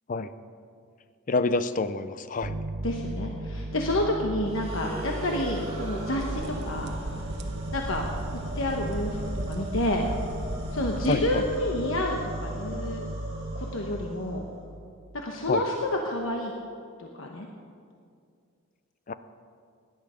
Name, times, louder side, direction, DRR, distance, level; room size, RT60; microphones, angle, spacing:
voice 1, 1.3-2.5 11.1-11.4 15.5-15.6 19.1-19.2, left 3 dB, 40° left, 12 dB, 0.5 m, -27 dB
sound 1, 2.4-15.6, right 1 dB, 80° right, 0.9 m, -36 dB
voice 2, 2.8-6.9 7.7-8.0 8.6-9.2 9.5-10.1 10.7-13.1 13.5-14.4 15.1-16.5 17.0-17.5, left 1 dB, 70° left, 1 dB, 1.1 m, -29 dB
sound 2, 4.4-14.6, right 1 dB, 30° right, 2.6 m, -41 dB
sound 3, 6.2-11.6, right 1 dB, 50° right, 1.1 m, -37 dB
17.0 x 11.0 x 5.1 m, 2.3 s
head